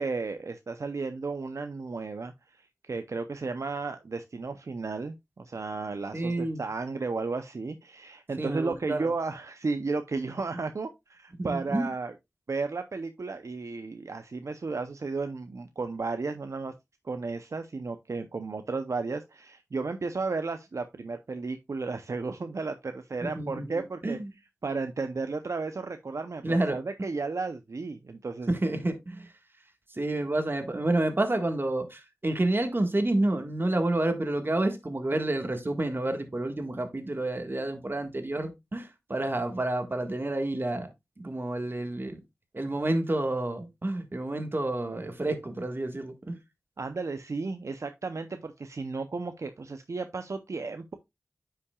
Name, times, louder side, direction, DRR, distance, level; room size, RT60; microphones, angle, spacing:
voice 1, 0.0-12.1 12.5-16.7 17.0-24.2 24.6-28.5 46.8-50.9, right 4 dB, 70° right, 0.6 m, -34 dB
voice 2, 6.1-6.6 8.4-9.1 11.4-11.9 23.2-24.3 26.4-26.8 28.5-29.3 29.9-40.9 41.2-42.2 42.5-46.4, right 2 dB, 40° right, 1.6 m, -29 dB
9.7 x 5.8 x 2.3 m
wide cardioid pair, 50°, 5 cm